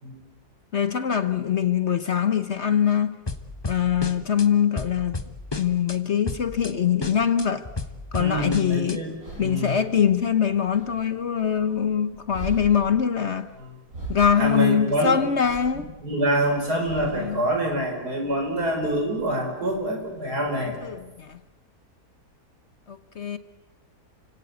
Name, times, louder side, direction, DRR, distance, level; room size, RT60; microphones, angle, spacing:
voice 1, 0.7-3.2 3.6-5.2 5.6-7.7 8.1-9.0 9.4-13.5 14.1-15.9 17.1-17.5 20.6-21.4 22.9-23.4, left 8 dB, 50° left, 1.1 m, -23 dB
sound 1, 3.3-4.5 4.8-6.0 6.3-6.7 7.0-9.0, left 3 dB, 20° left, 1.0 m, -33 dB
voice 2, 8.2-9.8 14.4-15.2 16.0-20.7, right 1 dB, 75° right, 5.8 m, -26 dB
sound 2, 8.5-21.4, right 2 dB, 60° right, 7.6 m, -43 dB
29.5 x 17.0 x 8.3 m
omnidirectional pair, 1.7 m